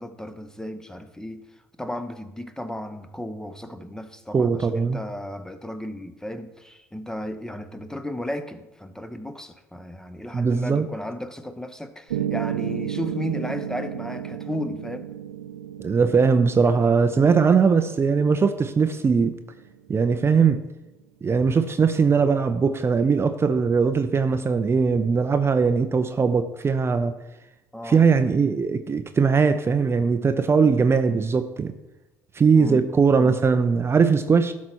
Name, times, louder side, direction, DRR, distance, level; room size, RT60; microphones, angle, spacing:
voice 1, 0.0-1.4 1.8-15.1 27.7-28.0 30.6-30.8 32.5-32.9, equal, 5° left, 10 dB, 0.9 m, -34 dB
voice 2, 4.3-5.0 10.3-10.9 15.8-19.4 19.9-20.6 21.2-27.2 27.8-31.7 32.3-34.5, right 5 dB, 30° right, 9 dB, 0.6 m, -20 dB
Piano, 12.1-20.2, right 10 dB, 90° right, 0.4 m, -33 dB
12.0 x 4.2 x 6.2 m, 1.0 s
hypercardioid pair, 60°, 9 cm